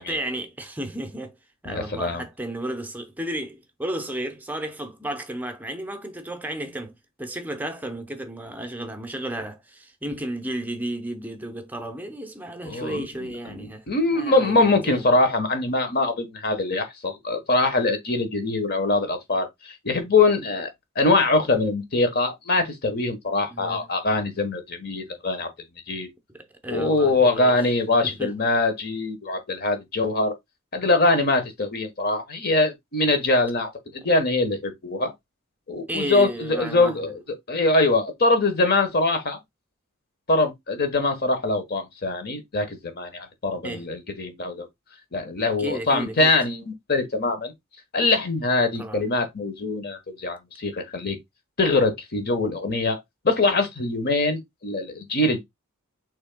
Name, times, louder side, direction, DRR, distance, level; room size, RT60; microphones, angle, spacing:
voice 1, 0.0-1.4 1.6-13.9 14.1-15.1 23.5-23.9 26.3-27.6 28.0-28.3 35.9-37.1 43.6-43.9 45.6-46.3 48.8-49.1, right 1 dB, 10° right, 0.7 m, -33 dB
voice 2, 1.6-2.2 12.6-20.7 20.9-25.5 25.9-26.1 26.7-30.4 30.7-35.1 35.7-37.2 37.5-39.4 40.3-44.7 45.1-47.5 47.9-51.2 51.6-55.4, left 2 dB, 45° left, 1.2 m, -23 dB
6.2 x 3.7 x 2.2 m
head